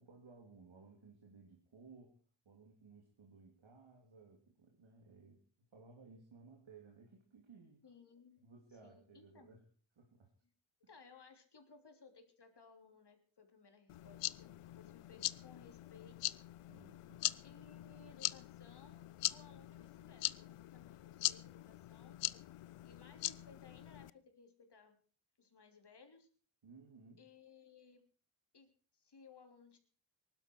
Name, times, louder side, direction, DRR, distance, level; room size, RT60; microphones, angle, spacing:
voice 1, 0.0-2.2 2.4-5.4 5.7-7.8 8.4-9.6 9.9-10.3 16.7-17.3 26.6-27.2, right 4 dB, 65° right, 1 dB, 3.0 m, -59 dB
voice 2, 7.8-8.4 8.8-9.5 10.9-16.5 17.4-22.2 22.8-25.0 25.4-26.3 27.2-28.0 28.5-29.8, left 5 dB, 50° left, 6 dB, 3.4 m, -61 dB
sound 1, 13.9-24.1, left 15 dB, 85° left, 0.6 m, -42 dB
19.5 x 12.0 x 4.6 m, 0.40 s
cardioid pair, 60°, 50 cm